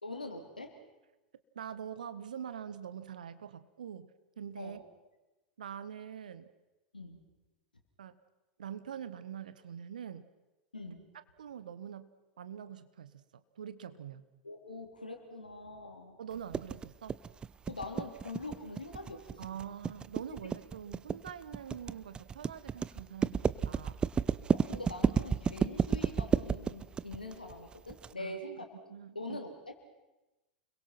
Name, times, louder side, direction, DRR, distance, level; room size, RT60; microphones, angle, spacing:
voice 1, 0.0-0.7 4.6-4.8 6.9-7.2 10.7-11.1 14.4-16.2 17.7-19.4 20.4-20.5 24.5-28.7 29.1-29.7, left 2 dB, 85° left, 4 dB, 3.6 m, -43 dB
voice 2, 1.5-4.1 4.4-4.8 5.6-6.5 8.0-8.2 8.6-10.3 10.8-10.9 11.4-12.1 12.4-13.2 13.5-14.2 16.2-17.1 19.4-24.0 28.2-28.4 28.9-29.4, right 8 dB, 70° right, 13 dB, 1.4 m, -44 dB
sound 1, 16.5-28.1, right 6 dB, 20° right, 0.7 m, -31 dB
29.5 x 22.0 x 6.0 m, 1.1 s
figure-of-eight pair, 85°, 5 cm